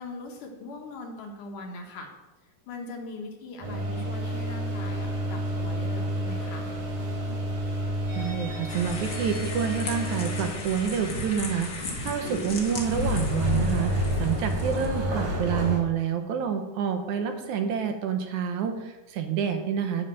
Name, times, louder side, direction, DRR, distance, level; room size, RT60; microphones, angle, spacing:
voice 1, 0.0-2.1 2.7-6.7, left 3 dB, 75° left, 1 dB, 3.0 m, -40 dB
sound 1, 3.6-15.8, equal, 85° right, 4.9 m, -30 dB
voice 2, 8.1-20.1, right 7 dB, 70° right, 6 dB, 2.1 m, -28 dB
sound 2, 8.7-15.0, left 2 dB, 45° left, 1.3 m, -37 dB
11.0 x 5.5 x 7.5 m, 1.0 s
omnidirectional pair, 3.8 m